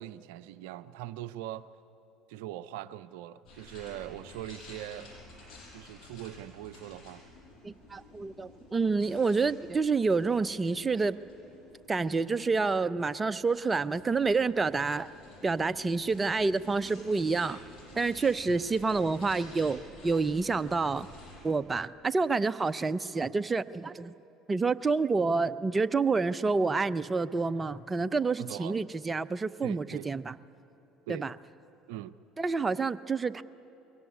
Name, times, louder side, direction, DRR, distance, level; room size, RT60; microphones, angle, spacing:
voice 1, 0.0-1.7 2.3-5.1 5.7-7.2 18.5-18.6 28.4-28.8 29.6-30.1 31.1-31.3 31.9-32.2, right 13 dB, 75° right, 14 dB, 0.5 m, -41 dB
sound 1, 3.5-21.4, left 2 dB, 55° left, 7.6 m, -52 dB
voice 2, 7.6-11.2 11.9-15.1 15.4-17.6 18.0-21.1 21.4-24.1 24.5-30.3 31.1-31.3 32.4-33.4, right 4 dB, 25° right, 13 dB, 0.7 m, -28 dB
22.0 x 18.0 x 9.6 m, 2.9 s
hypercardioid pair, 65°, 0 cm